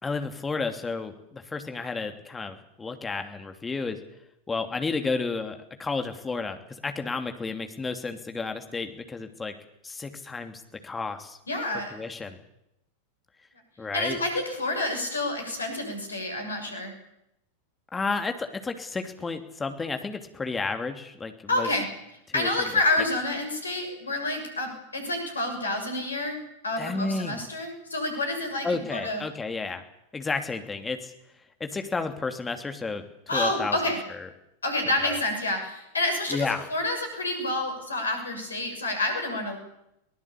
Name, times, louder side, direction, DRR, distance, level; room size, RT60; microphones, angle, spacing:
voice 1, 0.0-4.0 4.5-9.5 9.8-11.4 11.7-12.4 13.8-14.2 17.9-21.7 22.3-22.7 26.8-27.4 28.6-29.8 30.1-31.1 31.6-33.8 34.1-34.3 35.0-35.2 36.3-36.7, left 4 dB, 15° left, 7 dB, 2.9 m, -32 dB
voice 2, 11.5-11.9 13.9-16.9 21.5-21.9 22.3-29.2 33.3-34.0 34.6-39.6, left 2 dB, 75° left, 5 dB, 6.9 m, -28 dB
23.0 x 19.0 x 8.6 m, 0.84 s
figure-of-eight pair, 90°, 0 cm